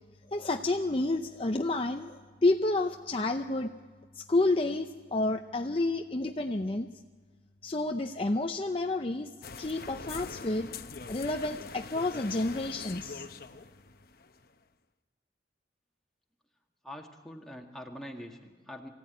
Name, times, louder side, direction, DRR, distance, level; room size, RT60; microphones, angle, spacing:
voice 1, 0.3-3.7 4.2-6.9 7.6-9.3 9.6-10.7 11.1-13.2, left 2 dB, 30° left, 5 dB, 0.6 m, -30 dB
sound 1, 9.4-14.5, left 4 dB, 55° left, 0.9 m, -44 dB
voice 2, 16.8-18.9, equal, ahead, 1 dB, 1.8 m, -44 dB
23.5 x 16.0 x 9.4 m, 1.5 s
head